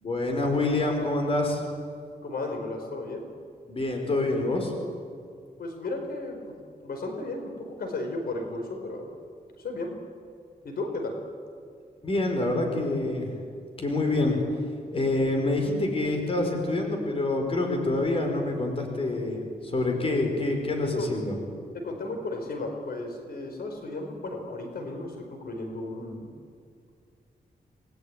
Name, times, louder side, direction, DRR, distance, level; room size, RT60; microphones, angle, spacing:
voice 1, 0.0-1.6 3.7-4.7 12.0-13.4 13.8-14.4 14.9-21.3, left 2 dB, 35° left, 3 dB, 5.0 m, -26 dB
voice 2, 2.2-3.2 5.6-6.5 6.8-9.1 9.6-9.9 10.6-11.2 20.9-21.1 21.7-26.3, left 2 dB, 70° left, 3 dB, 4.8 m, -34 dB
28.5 x 20.5 x 9.9 m, 2.2 s
wide cardioid pair, 155°, 16 cm